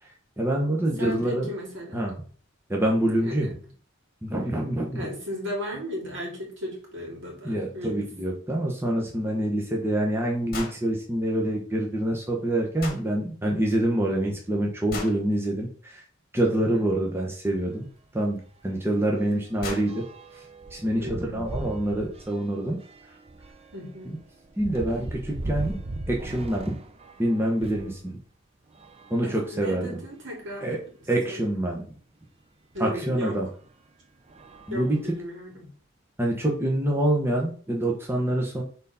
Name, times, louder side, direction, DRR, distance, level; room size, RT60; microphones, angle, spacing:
voice 1, 0.0-1.5 1.9-2.2 2.7-3.5 4.2-5.1 7.4-16.0 16.3-17.9 18.1-20.0 20.3-20.4 20.7-22.8 24.1-24.2 24.6-25.8 26.1-26.8 27.2-28.2 29.1-30.0 30.6-30.8 31.1-31.8 32.8-33.5 34.7-35.0 36.2-38.6, right 1 dB, 10° right, -1 dB, 1.0 m, -26 dB
voice 2, 1.0-2.0 3.2-3.5 4.9-8.1 16.5-16.8 21.0-21.4 23.7-24.1 29.2-30.9 31.3-31.4 32.7-33.4 34.7-35.7, left 1 dB, 65° right, -1 dB, 2.7 m, -36 dB
sound 1, 10.5-10.8 12.8-13.0 14.9-15.2 17.5-17.6 18.9-19.0 19.3-19.4 19.6-19.9, left 3 dB, 50° left, 1.6 m, -35 dB
sound 2, 17.5-17.7 18.0-18.1 18.5-28.0 28.7-30.0 30.7-30.8 31.1-31.2 32.9-33.0 33.6-33.8 34.3-35.5, right 2 dB, 30° right, 0.6 m, -39 dB
4.5 x 4.0 x 5.5 m, 0.43 s
head